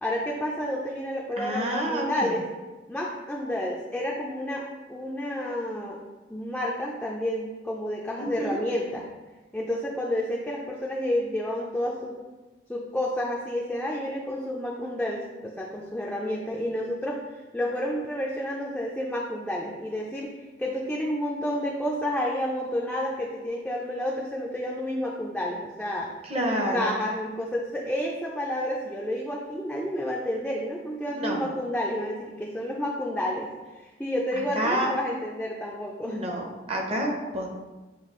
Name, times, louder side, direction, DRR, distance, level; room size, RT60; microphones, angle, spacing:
voice 1, 0.0-2.4 2.9-6.0 6.3-9.1 9.5-12.1 12.7-17.2 17.5-26.1 26.4-33.5 33.8-36.2, left 1 dB, 5° left, -3 dB, 0.3 m, -30 dB
voice 2, 1.4-2.3 8.2-8.6 26.2-26.9 31.1-31.4 34.5-34.9 36.0-37.5, right 1 dB, 35° right, 0 dB, 0.6 m, -29 dB
6.9 x 2.3 x 3.0 m, 1.2 s
head